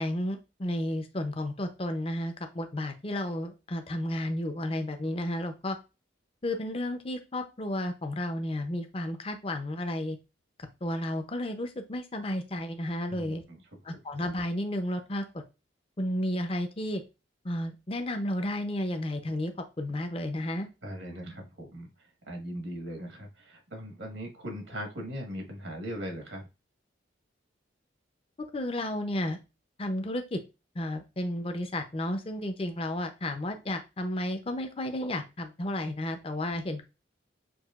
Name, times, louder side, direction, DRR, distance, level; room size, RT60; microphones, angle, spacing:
voice 1, 0.0-5.8 6.4-10.2 10.8-13.4 13.9-15.2 16.0-17.0 17.4-19.5 19.8-20.7 28.5-29.4 29.8-30.4 30.8-36.8, left 1 dB, 30° left, 7 dB, 0.5 m, -32 dB
voice 2, 13.1-13.6 13.9-14.0 20.8-26.5, equal, 85° right, 1 dB, 1.4 m, -39 dB
6.2 x 2.7 x 2.4 m, 0.28 s
head